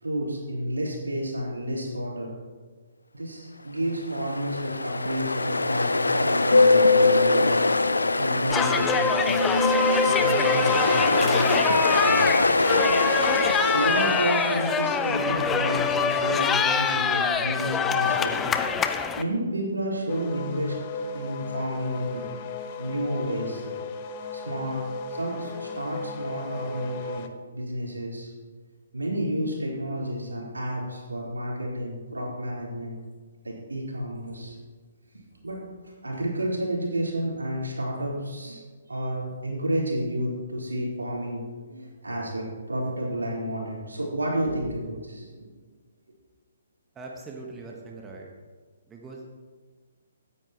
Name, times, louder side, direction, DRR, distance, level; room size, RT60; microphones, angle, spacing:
voice 1, 0.0-2.4 3.1-7.6 8.2-9.5 10.0-12.4 13.3-20.8 21.1-22.2 22.8-23.7 24.3-27.2 27.5-28.3 28.9-33.0 33.4-34.6 35.1-35.6 36.0-38.6 38.9-45.5, right 1 dB, 80° right, -4 dB, 4.0 m, -31 dB
Ocean, 3.9-15.0, left 3 dB, 80° left, 0.6 m, -23 dB
sound 1, 8.5-19.2, left 5 dB, 15° left, 0.5 m, -25 dB
sound 2, 20.1-27.3, left 4 dB, 35° left, 0.8 m, -36 dB
voice 2, 46.9-48.3 48.9-49.2, right 3 dB, 15° right, -1 dB, 1.3 m, -41 dB
16.5 x 9.9 x 3.0 m, 1.5 s
figure-of-eight pair, 130°, 0 cm